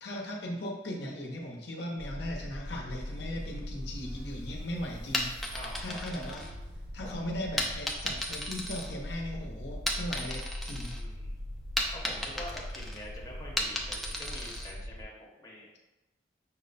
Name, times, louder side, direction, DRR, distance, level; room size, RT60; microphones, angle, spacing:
voice 1, 0.0-5.4 5.8-6.4 6.9-11.0, left 1 dB, 70° left, 0 dB, 0.7 m, -38 dB
sound 1, 2.0-15.0, left 1 dB, 55° right, 0.5 m, -41 dB
sound 2, 3.0-7.3, equal, 85° right, 1.2 m, -57 dB
sound 3, 5.1-6.9 7.6-9.4 9.7-11.0 11.3-14.8, left 1 dB, ahead, 0.4 m, -35 dB
voice 2, 5.5-6.0 7.0-7.2 10.9-11.4 11.9-15.8, left 1 dB, 20° left, -4 dB, 0.8 m, -46 dB
5.7 x 2.1 x 4.0 m, 1.1 s
head